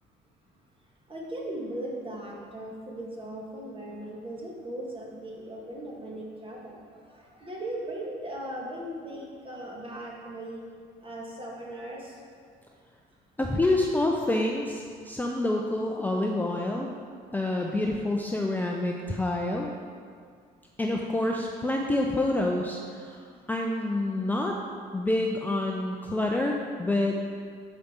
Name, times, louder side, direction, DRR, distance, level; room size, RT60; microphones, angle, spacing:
voice 1, 1.1-10.6 11.0-12.4, right 1 dB, 30° right, -2 dB, 1.6 m, -38 dB
voice 2, 13.4-16.9 17.3-19.7 20.8-23.2 23.5-24.6 24.9-27.2, left 2 dB, 10° left, 0 dB, 0.5 m, -27 dB
7.1 x 5.1 x 4.4 m, 2.1 s
cardioid pair, 95°, 18 cm